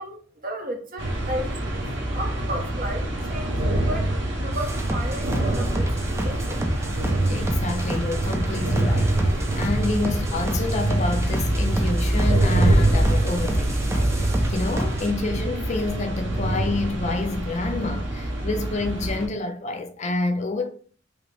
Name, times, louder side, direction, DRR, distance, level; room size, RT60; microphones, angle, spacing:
voice 1, 0.0-4.1 4.4-6.6, right 1 dB, 50° right, 0.9 m, -34 dB
sound 1, 1.0-19.3, right 1 dB, 75° right, 0.9 m, -25 dB
sound 2, 4.5-15.1, equal, 15° right, 0.5 m, -30 dB
voice 2, 7.3-20.7, left 2 dB, 40° left, 0.5 m, -28 dB
5.0 x 2.1 x 3.3 m
head